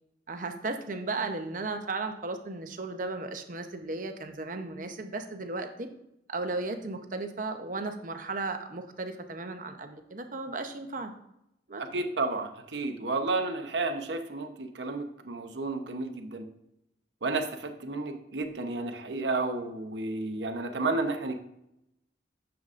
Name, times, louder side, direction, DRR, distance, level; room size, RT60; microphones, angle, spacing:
voice 1, 0.3-5.9 6.3-11.1 11.7-11.8, right 3 dB, 50° right, 7 dB, 0.8 m, -35 dB
voice 2, 11.9-16.5 17.2-21.3, right 3 dB, 80° right, 6 dB, 0.9 m, -32 dB
9.5 x 7.1 x 2.5 m, 0.82 s
head